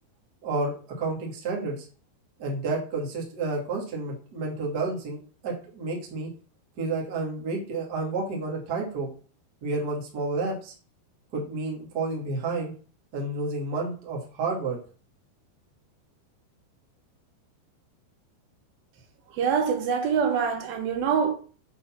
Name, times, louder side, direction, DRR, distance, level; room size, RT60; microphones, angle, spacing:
voice 1, 0.4-0.7 1.0-1.9 2.4-5.2 5.4-6.3 6.8-9.1 9.6-10.7 11.3-12.7 13.1-14.8, right 3 dB, 45° right, 1.2 m, -30 dB
voice 2, 19.4-21.3, right 6 dB, 75° right, 2.7 m, -24 dB
6.7 x 4.1 x 5.6 m
omnidirectional pair, 4.6 m